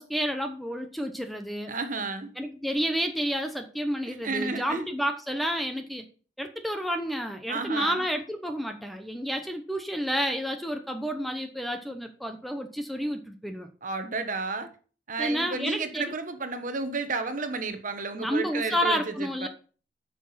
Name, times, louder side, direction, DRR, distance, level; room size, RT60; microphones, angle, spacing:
voice 1, 0.0-1.7 2.4-6.1 6.4-13.7 15.2-16.1 18.1-19.5, equal, ahead, 0.8 m, -30 dB
voice 2, 1.7-2.3 4.1-4.9 7.5-8.0 13.8-14.7 15.1-19.5, right 3 dB, 45° right, 1.2 m, -32 dB
9.1 x 6.2 x 5.6 m
head